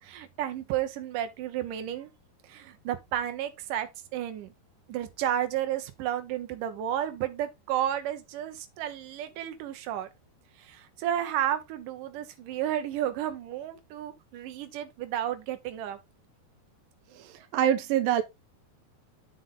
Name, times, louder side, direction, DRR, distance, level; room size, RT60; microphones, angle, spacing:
voice 1, 0.0-2.1 2.4-4.5 4.9-10.1 10.6-16.0, right 11 dB, 70° right, 2.1 m, -32 dB
voice 2, 17.1-18.2, right 10 dB, 90° right, 2.0 m, -26 dB
7.7 x 5.7 x 3.8 m
omnidirectional pair, 4.9 m